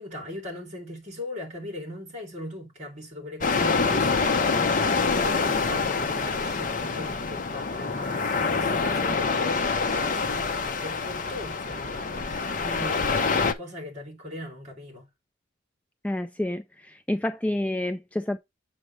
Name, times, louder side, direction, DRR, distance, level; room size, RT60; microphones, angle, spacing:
voice 1, 0.0-15.0, left 1 dB, 35° right, 3.0 m, -39 dB
sound 1, 3.4-13.5, left 4 dB, 40° left, 0.8 m, -26 dB
voice 2, 16.0-18.4, left 1 dB, 5° left, 0.4 m, -29 dB
7.4 x 6.2 x 3.2 m
head